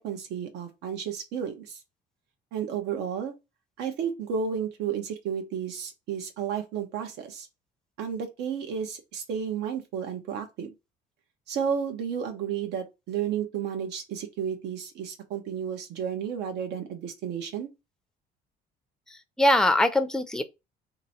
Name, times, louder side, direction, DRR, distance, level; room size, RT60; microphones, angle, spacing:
voice 1, 0.0-1.8 2.5-3.3 3.8-7.5 8.0-10.7 11.5-17.7, right 7 dB, 80° right, 1.0 m, -32 dB
voice 2, 19.1-20.4, left 1 dB, 5° left, 0.5 m, -23 dB
2.9 x 2.7 x 4.1 m
cardioid pair, 110°, 17 cm